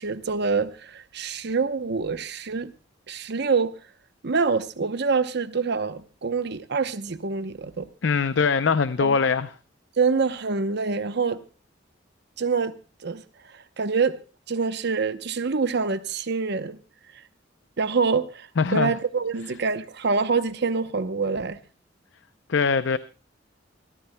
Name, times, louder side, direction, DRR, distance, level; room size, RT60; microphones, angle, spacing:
voice 1, 0.0-2.7 3.1-3.8 4.2-7.9 9.0-9.1 10.0-11.4 12.4-12.7 13.0-13.2 13.5-14.2 14.5-16.8 17.8-21.6, right 4 dB, 60° right, 0.8 m, -26 dB
voice 2, 8.0-9.5 18.6-18.9 22.5-23.0, left 5 dB, 65° left, 0.6 m, -22 dB
25.0 x 13.5 x 2.2 m
head